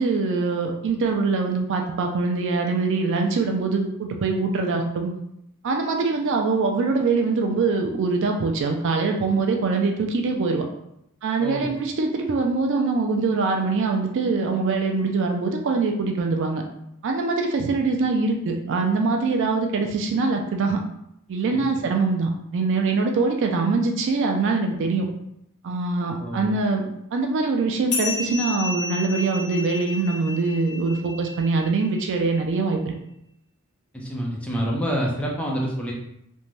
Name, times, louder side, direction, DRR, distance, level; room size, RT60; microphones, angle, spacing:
voice 1, 0.0-5.1 5.6-10.6 11.2-16.6 17.0-20.8 21.3-25.1 25.6-32.9, right 3 dB, 55° right, 3 dB, 0.3 m, -23 dB
voice 2, 11.4-11.7 21.5-21.6 26.2-26.6 33.9-35.9, equal, 5° left, -3 dB, 0.5 m, -27 dB
sound 1, 27.9-32.8, left 3 dB, 50° left, 0.6 m, -33 dB
2.5 x 2.1 x 3.1 m, 0.78 s
head